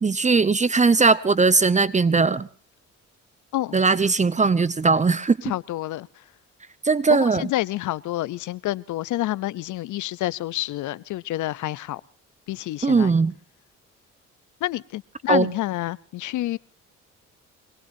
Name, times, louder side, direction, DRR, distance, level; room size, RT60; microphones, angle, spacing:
voice 1, 0.0-2.5 3.7-5.4 6.8-7.5 12.8-13.3 15.3-15.5, right 4 dB, 25° right, 0.8 m, -19 dB
voice 2, 5.4-6.2 7.1-12.0 12.5-13.1 14.6-16.6, left 15 dB, 80° left, 0.7 m, -28 dB
25.0 x 21.0 x 2.7 m
cardioid pair, 90°, 30 cm